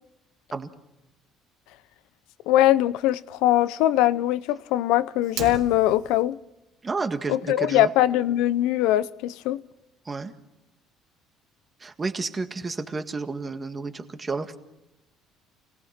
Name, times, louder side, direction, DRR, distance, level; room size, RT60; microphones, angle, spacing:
voice 1, 2.5-6.4 7.3-9.6, left 13 dB, 85° left, 0.8 m, -22 dB
Fire, 5.2-6.2, right 8 dB, 80° right, 3.0 m, -36 dB
voice 2, 6.8-7.9 10.1-10.3 11.8-14.6, right 4 dB, 20° right, 1.7 m, -31 dB
29.5 x 19.0 x 5.9 m
cardioid pair, 135°, 0 cm